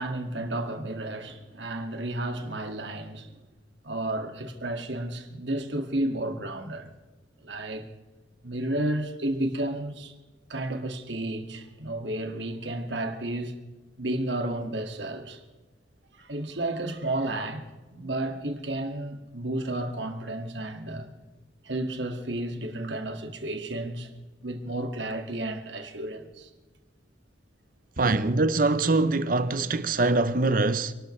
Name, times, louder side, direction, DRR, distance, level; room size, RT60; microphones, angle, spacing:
voice 1, 0.0-3.3 3.8-6.9 7.4-7.9 8.4-10.1 10.5-13.6 14.0-15.4 16.2-21.1 21.6-24.1 24.4-26.5 28.0-28.2, right 1 dB, 80° right, 2.1 m, -32 dB
voice 2, 28.0-30.9, right 3 dB, 50° right, 0.8 m, -23 dB
29.5 x 12.5 x 3.3 m
head